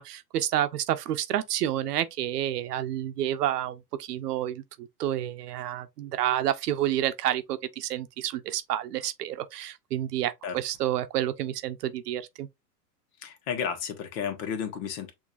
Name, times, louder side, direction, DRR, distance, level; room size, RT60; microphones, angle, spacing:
voice 1, 0.0-12.5, right 12 dB, 75° right, 0.8 m, -29 dB
voice 2, 13.2-15.1, left 7 dB, 60° left, 1.6 m, -32 dB
6.3 x 2.9 x 2.4 m
hypercardioid pair, 110°, 47 cm